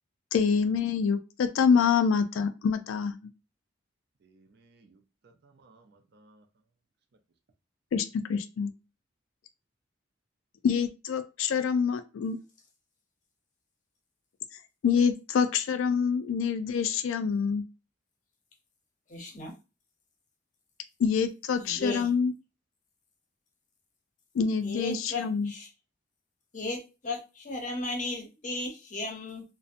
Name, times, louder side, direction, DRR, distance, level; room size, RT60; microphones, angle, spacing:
voice 1, 0.3-3.2 7.9-8.7 10.6-12.4 14.8-17.6 21.0-22.3 24.4-25.5, left 6 dB, 85° left, 10 dB, 0.3 m, -26 dB
voice 2, 4.2-6.4, right 3 dB, 55° right, 5 dB, 0.4 m, -60 dB
voice 3, 19.1-19.5 21.5-22.1 24.6-25.7 26.5-29.4, left 2 dB, 40° left, 2 dB, 0.6 m, -35 dB
2.6 x 2.0 x 2.4 m, 0.29 s
head